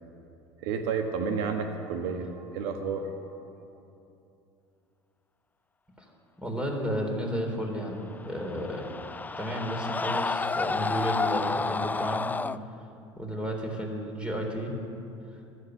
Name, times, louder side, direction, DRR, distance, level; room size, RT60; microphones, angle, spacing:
voice 1, 0.6-3.4, right 5 dB, 70° right, 5 dB, 1.3 m, -31 dB
voice 2, 6.4-8.9 9.4-12.3 13.2-14.7, equal, 5° right, 1 dB, 3.9 m, -32 dB
sound 1, 8.1-12.6, left 4 dB, 10° left, 0.4 m, -30 dB
15.5 x 13.0 x 6.6 m, 2.8 s
hypercardioid pair, 80°, 14 cm